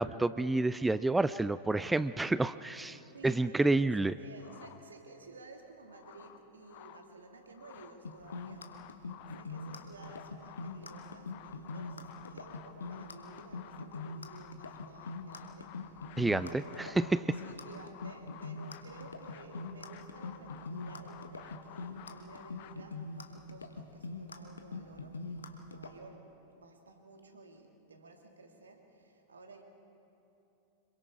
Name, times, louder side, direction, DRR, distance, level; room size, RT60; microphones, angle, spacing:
voice 1, 0.0-4.1 16.2-16.5 16.8-17.2, right 2 dB, 10° right, 15 dB, 0.4 m, -29 dB
voice 2, 3.1-29.6, right 3 dB, 75° right, 3 dB, 2.4 m, -54 dB
sound 1, 4.4-5.2 5.7-7.1 7.4-22.7, left 11 dB, 45° left, 1.0 m, -53 dB
sound 2, 8.0-25.9, left 3 dB, 75° left, 1.3 m, -42 dB
26.0 x 22.5 x 4.8 m, 3.0 s
figure-of-eight pair, 90°, 0 cm